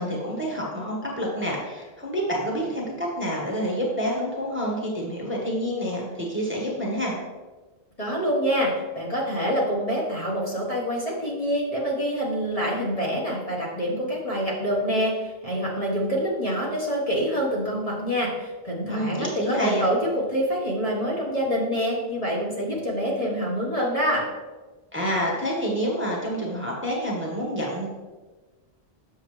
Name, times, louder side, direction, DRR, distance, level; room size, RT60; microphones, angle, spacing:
voice 1, 0.0-7.2 18.9-19.9 24.9-27.9, equal, 10° right, -3 dB, 1.3 m, -28 dB
voice 2, 8.0-24.2, equal, 35° left, -4 dB, 1.5 m, -26 dB
7.2 x 6.5 x 3.2 m, 1.2 s
omnidirectional pair, 1.1 m